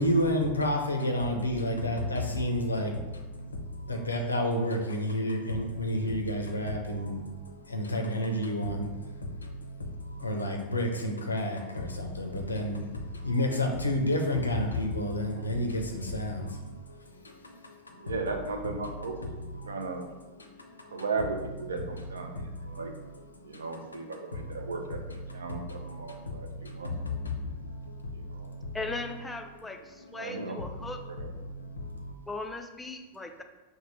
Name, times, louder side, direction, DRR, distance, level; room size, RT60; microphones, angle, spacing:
voice 1, 0.0-18.1 18.8-21.0 21.8-29.1 29.4-32.1, left 1 dB, 80° left, 3 dB, 0.4 m, -32 dB
voice 2, 18.0-19.3 19.7-20.0 20.9-22.9 23.4-26.9 28.3-28.5 30.1-30.6 31.1-31.3, right 4 dB, 70° right, 4 dB, 0.4 m, -36 dB
voice 3, 28.7-29.8 30.1-31.0 32.3-33.4, left 3 dB, 10° left, 5 dB, 0.3 m, -38 dB
3.2 x 2.1 x 4.2 m, 1.2 s
figure-of-eight pair, 90°, 0 cm